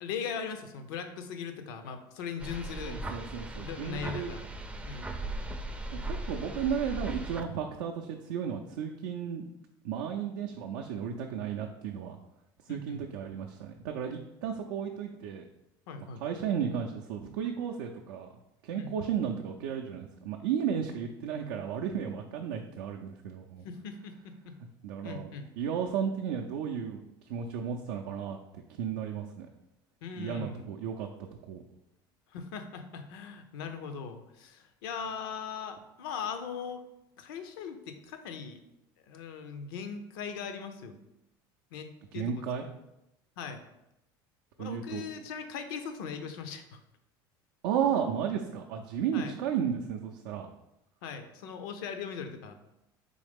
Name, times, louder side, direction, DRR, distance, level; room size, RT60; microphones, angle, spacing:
voice 1, 0.0-3.0 3.6-4.5 4.8-5.2 12.7-13.0 15.9-16.2 18.7-18.9 23.6-24.5 25.0-25.5 30.0-30.7 32.3-36.8 37.2-38.6 39.1-40.9 41.7-41.9 42.1-42.3 43.4-43.6 44.6-46.8 49.1-49.3 51.0-52.5, left 6 dB, 80° left, 8 dB, 0.5 m, -39 dB
sound 1, 2.4-7.4, right 1 dB, 10° right, 0.4 m, -38 dB
voice 2, 2.8-4.3 5.9-9.4 9.8-12.2 12.7-15.4 16.2-18.3 18.6-23.6 24.8-25.3 25.6-27.0 27.3-29.5 30.2-31.1 31.5-31.6 42.1-42.6 44.6-45.0 47.6-50.5, right 8 dB, 80° right, 1 dB, 0.4 m, -34 dB
3.8 x 3.2 x 3.4 m, 0.88 s
supercardioid pair, 90°, 11 cm